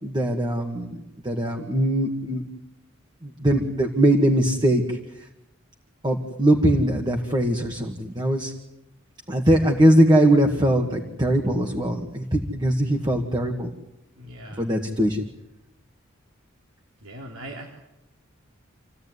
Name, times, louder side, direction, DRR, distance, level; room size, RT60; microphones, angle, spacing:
voice 1, 0.0-1.0 1.2-2.4 3.2-5.0 6.0-8.5 9.3-13.7 14.6-15.2, right 1 dB, 20° right, 2 dB, 2.0 m, -21 dB
voice 2, 14.2-14.6 17.0-17.7, right 1 dB, 85° right, 0 dB, 3.4 m, -39 dB
28.0 x 16.0 x 9.7 m, 0.91 s
head